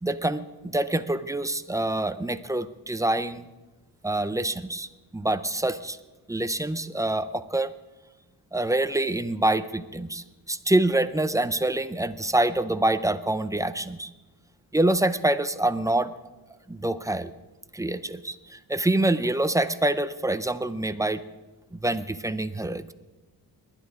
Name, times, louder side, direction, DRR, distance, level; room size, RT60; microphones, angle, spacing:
voice 1, 0.0-3.5 4.0-6.0 6.3-7.7 8.5-14.1 14.7-16.1 16.7-17.3 17.7-21.2 21.7-22.9, right 1 dB, 10° right, 13 dB, 0.4 m, -26 dB
29.5 x 11.5 x 3.6 m, 1.1 s
wide cardioid pair, 145°, 39 cm